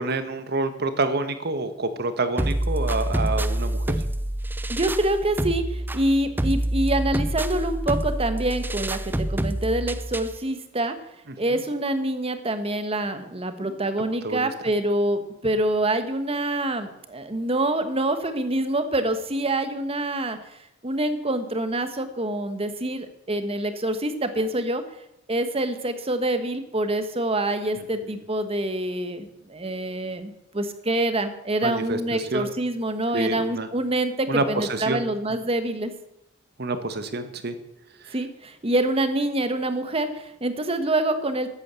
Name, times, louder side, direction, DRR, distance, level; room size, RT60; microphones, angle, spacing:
voice 1, 0.0-4.0 11.3-11.6 13.6-13.8 14.2-14.5 27.8-27.9 31.6-32.5 33.1-33.7 34.3-35.0 36.6-37.6 38.0-38.1, right 2 dB, 55° right, 10 dB, 1.4 m, -28 dB
sound 1, 2.4-10.4, right 1 dB, 10° right, 0.5 m, -27 dB
voice 2, 4.7-10.9 11.4-24.8 25.3-35.9 38.1-41.5, right 1 dB, 30° right, 9 dB, 1.3 m, -26 dB
13.0 x 8.9 x 6.9 m, 0.83 s
head